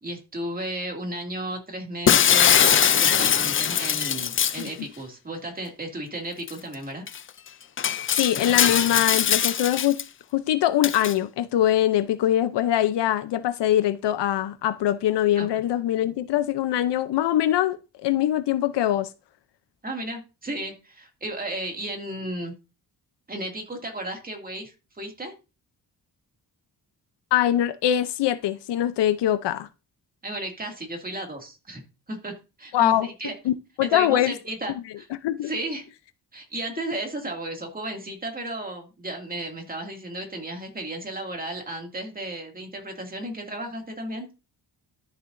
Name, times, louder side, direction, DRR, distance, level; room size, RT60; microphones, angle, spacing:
voice 1, 0.0-7.1 15.4-15.5 19.8-22.5 23.3-25.3 30.2-31.8 32.1-33.3 33.8-35.1 35.4-35.9 36.3-44.3, right 1 dB, 20° right, 2.4 m, -34 dB
Shatter, 2.1-4.7 6.5-6.6 7.1-7.2 7.8-10.0 10.8-11.1, left 8 dB, 35° left, 0.4 m, -21 dB
voice 2, 8.2-10.0 10.3-17.8 18.0-19.1 27.3-29.7 32.7-33.1 33.5-34.3 35.2-35.5, left 12 dB, 90° left, 0.7 m, -23 dB
13.0 x 6.6 x 2.6 m
wide cardioid pair, 140°, 40 cm